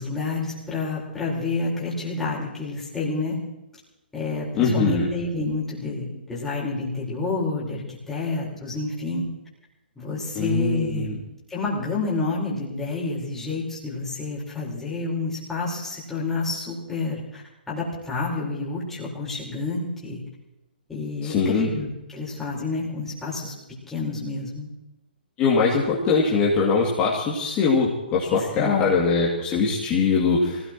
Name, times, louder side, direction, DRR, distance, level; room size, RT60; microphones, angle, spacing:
voice 1, 0.0-3.4 4.1-9.2 10.0-11.2 11.5-20.2 20.9-23.5 23.8-24.7 28.4-28.9, left 3 dB, 5° left, -6 dB, 4.7 m, -29 dB
voice 2, 4.6-5.1 10.3-11.1 21.2-21.7 25.4-30.6, left 4 dB, 25° left, -6 dB, 2.7 m, -22 dB
25.0 x 17.0 x 3.1 m, 0.96 s
figure-of-eight pair, 125°, 5 cm